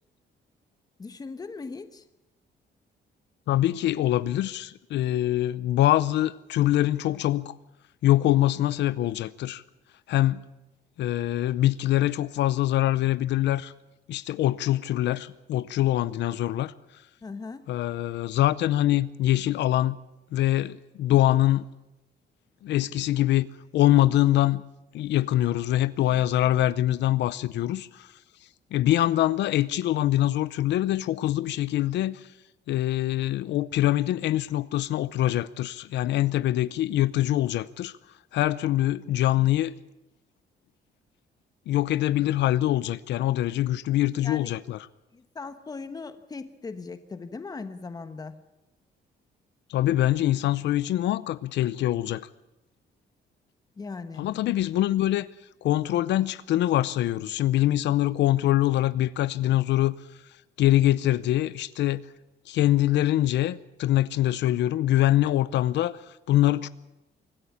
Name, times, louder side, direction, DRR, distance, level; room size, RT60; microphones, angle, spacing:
voice 1, 1.0-2.0 17.2-17.7 44.2-44.5 45.1-48.3 53.8-54.3, left 4 dB, 20° left, 1.3 m, -39 dB
voice 2, 3.5-7.6 8.0-9.6 10.1-10.4 11.0-13.7 14.1-16.7 17.7-20.0 20.3-21.6 22.6-23.5 23.7-24.6 24.9-28.1 28.7-32.3 32.7-37.9 38.3-39.7 41.7-44.8 49.7-52.3 54.2-55.3 55.6-59.9 60.6-62.0 62.5-66.7, left 14 dB, 80° left, 0.7 m, -24 dB
24.5 x 14.5 x 8.6 m
cardioid pair, 160°, 18 cm